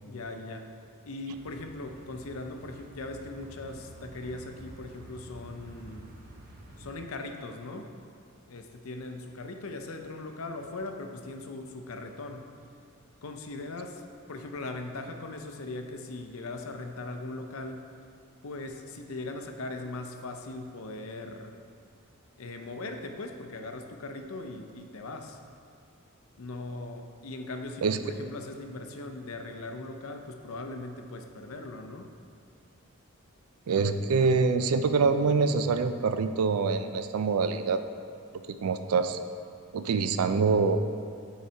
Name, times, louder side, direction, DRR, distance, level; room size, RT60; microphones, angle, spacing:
voice 1, 0.1-0.7 1.0-6.2 6.8-7.9 8.5-12.5 13.2-14.0 14.3-17.9 18.4-21.6 22.4-25.4 26.4-32.1, left 2 dB, 75° left, 5 dB, 0.6 m, -39 dB
sound 1, 1.3-6.9, right 1 dB, 40° right, 0.8 m, -49 dB
voice 2, 33.7-37.8 38.5-39.2 39.7-40.8, right 4 dB, 80° right, 9 dB, 0.4 m, -25 dB
8.3 x 4.0 x 4.4 m, 2.3 s
head